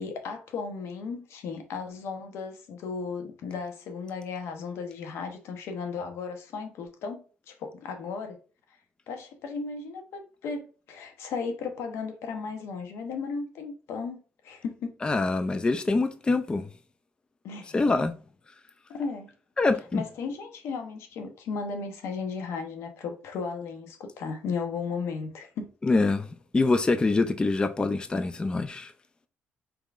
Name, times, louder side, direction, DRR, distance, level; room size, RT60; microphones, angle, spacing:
voice 1, 0.0-8.4 9.1-14.2 14.4-15.0 17.4-17.8 18.9-19.3 19.9-25.7, left 5 dB, 85° left, 0.8 m, -35 dB
voice 2, 15.0-16.7 17.7-18.1 19.6-20.0 25.8-26.3 26.5-28.9, left 3 dB, 20° left, 0.3 m, -25 dB
4.5 x 3.6 x 2.4 m
cardioid pair, 100°, 4 cm